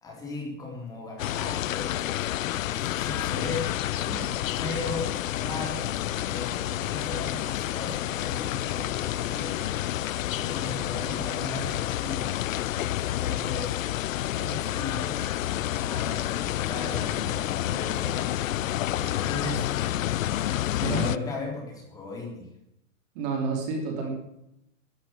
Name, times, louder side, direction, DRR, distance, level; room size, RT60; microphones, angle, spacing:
voice 1, 0.0-2.1 2.4-3.6 4.0-5.9 6.3-9.8 10.3-12.3 13.0-13.7 14.3-18.2 18.6-19.9 20.8-22.5, left 3 dB, 10° left, -1 dB, 3.5 m, -37 dB
sound 1, 1.2-21.2, left 13 dB, 80° left, 0.7 m, -29 dB
voice 2, 20.8-21.2 23.1-24.1, right 4 dB, 30° right, 2 dB, 3.0 m, -30 dB
13.0 x 12.0 x 8.9 m, 0.82 s
supercardioid pair, 175°, 39 cm